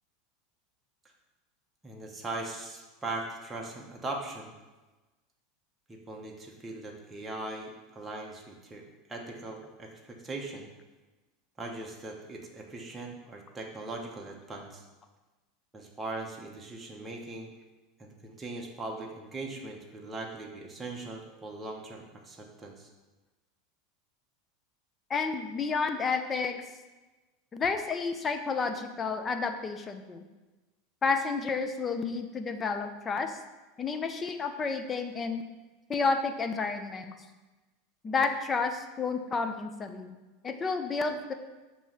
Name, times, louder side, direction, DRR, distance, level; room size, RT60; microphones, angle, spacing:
voice 1, 1.8-4.5 5.9-8.8 9.1-10.7 11.6-14.8 15.7-17.5 18.0-22.9, right 2 dB, 15° right, 0 dB, 1.0 m, -40 dB
voice 2, 25.1-26.7 27.5-30.2 31.0-33.4 33.8-35.4 35.9-37.1 38.0-40.2 40.4-41.3, left 4 dB, 25° left, 7 dB, 0.7 m, -30 dB
7.1 x 3.1 x 5.7 m, 1.2 s
supercardioid pair, 110°, 0 cm